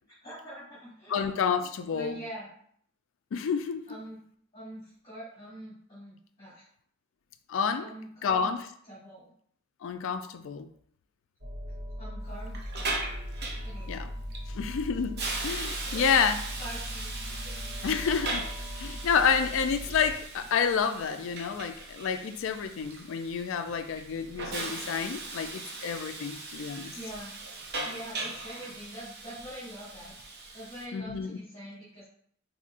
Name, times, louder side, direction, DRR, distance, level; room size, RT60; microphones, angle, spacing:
voice 1, 0.2-1.3 1.9-2.5 3.9-4.2 4.5-6.6 7.8-8.5 8.9-9.3 12.0-13.1 13.6-13.9 15.8-16.1 16.6-17.1 17.4-17.8 26.9-27.3 27.8-30.1 30.5-32.0, right 1 dB, 25° left, -9 dB, 1.4 m, -44 dB
voice 2, 1.1-2.2 3.3-3.8 7.5-7.9 8.2-8.6 9.8-10.7 13.9-14.1 14.5-16.4 17.8-18.5 18.8-27.0 30.9-31.4, left 6 dB, 65° left, 8 dB, 0.4 m, -29 dB
sound 1, 11.4-20.1, equal, 75° right, 1.2 m, -39 dB
Hiss, 12.3-30.9, right 3 dB, 50° right, 0.6 m, -39 dB
4.1 x 2.7 x 2.5 m, 0.63 s
head